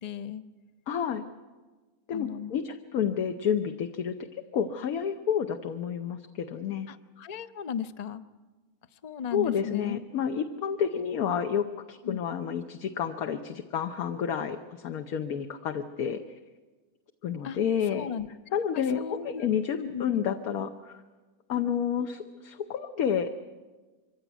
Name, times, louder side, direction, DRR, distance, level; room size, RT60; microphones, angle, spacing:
voice 1, 0.0-0.4 2.1-2.5 3.0-3.2 6.9-8.2 9.0-10.0 12.0-12.2 17.4-17.6 17.9-18.3 18.7-19.4 19.8-20.0, left 8 dB, 50° left, 12 dB, 0.5 m, -36 dB
voice 2, 0.9-1.2 2.1-6.9 9.3-16.4 17.2-18.1 18.5-21.0 21.5-23.5, left 8 dB, 65° left, 6 dB, 1.3 m, -30 dB
23.5 x 16.0 x 9.2 m, 1.3 s
omnidirectional pair, 1.7 m